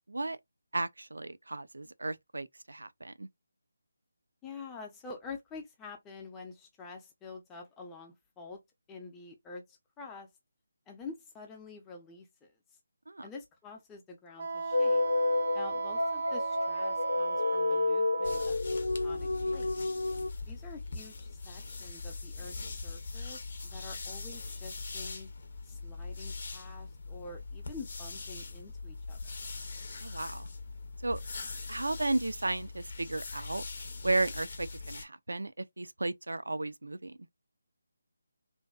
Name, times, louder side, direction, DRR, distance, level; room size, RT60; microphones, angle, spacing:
voice 1, 0.7-3.3 13.1-13.3 30.0-30.5 31.0-31.2 31.7-33.6 34.0-37.2, right 2 dB, 90° right, 0.3 m, -34 dB
voice 2, 4.4-8.6 8.9-10.3 10.9-12.5 13.2-15.1 15.5-18.6 19.0-19.8 20.5-25.3 25.6-29.4, left 4 dB, 10° left, 0.5 m, -47 dB
Wind instrument woodwind instrument, 14.4-18.5, right 4 dB, 40° right, 0.5 m, -35 dB
sound 1, 14.7-20.3, left 3 dB, 85° left, 0.3 m, -30 dB
sound 2, 18.2-35.1, left 3 dB, 50° left, 0.6 m, -41 dB
2.5 x 2.2 x 2.2 m
figure-of-eight pair, 165°, 0 cm